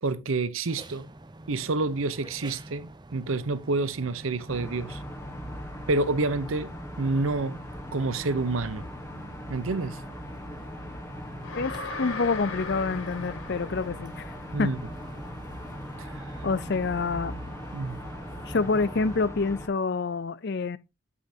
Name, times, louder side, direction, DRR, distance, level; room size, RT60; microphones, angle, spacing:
voice 1, 0.0-1.1 1.5-5.0 5.9-6.7 7.0-7.6 7.9-8.9 9.5-10.0 14.5-14.8 16.0-16.2 17.7-18.0, right 3 dB, 75° right, 0.7 m, -28 dB
sound 1, 0.7-19.3, right 2 dB, 20° right, 0.6 m, -47 dB
sound 2, 4.5-19.7, equal, 15° left, 1.2 m, -40 dB
sound 3, 11.4-14.5, left 4 dB, 75° left, 1.6 m, -38 dB
voice 2, 12.0-14.7 16.4-17.3 18.5-20.8, left 4 dB, 50° left, 0.5 m, -27 dB
9.5 x 8.2 x 2.8 m
head